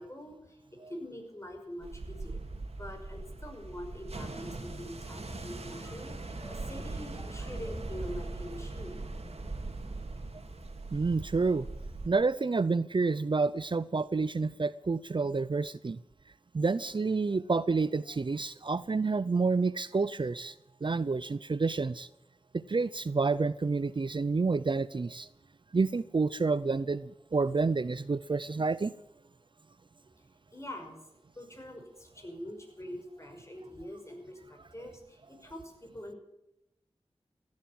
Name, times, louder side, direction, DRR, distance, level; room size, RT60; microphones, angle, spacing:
voice 1, 0.0-9.0 30.1-30.3 30.5-31.0 31.3-36.2, equal, 25° left, 3 dB, 5.5 m, -44 dB
sound 1, 1.8-12.1, right 2 dB, 70° right, 2.6 m, -40 dB
voice 2, 10.9-11.7 12.0-16.0 16.5-20.5 20.8-22.1 22.5-25.3 25.7-28.9, right 4 dB, 50° right, 17 dB, 0.5 m, -29 dB
16.0 x 10.5 x 7.8 m, 0.86 s
cardioid pair, 45°, 11 cm